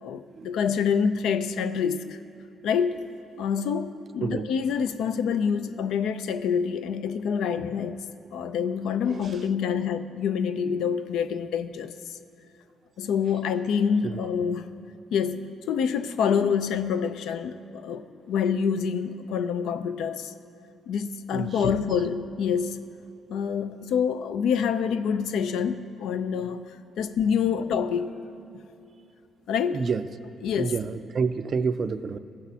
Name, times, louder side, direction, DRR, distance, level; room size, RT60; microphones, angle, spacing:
voice 1, 0.0-2.2 2.6-3.0 3.4-8.0 8.3-11.9 13.0-14.7 15.1-20.3 20.9-22.8 23.3-26.7 27.0-28.1 29.5-29.8 30.4-30.7, left 7 dB, 80° left, 11 dB, 0.4 m, -26 dB
voice 2, 9.0-9.4 14.0-14.2 21.3-21.7 29.7-30.1 30.6-32.2, right 5 dB, 50° right, 12 dB, 0.3 m, -29 dB
15.0 x 6.0 x 2.8 m, 2.7 s
cardioid pair, 90°, 0 cm